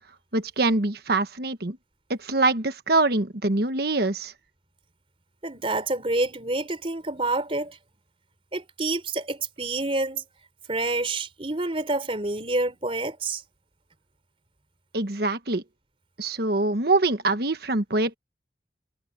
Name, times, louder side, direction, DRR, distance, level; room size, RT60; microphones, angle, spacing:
voice 1, 0.3-1.8 2.1-4.3 14.9-15.6 16.2-18.1, right 2 dB, 60° right, 1.4 m, -24 dB
voice 2, 5.4-7.8 8.5-10.2 10.7-13.4, right 2 dB, 30° right, 3.9 m, -28 dB
head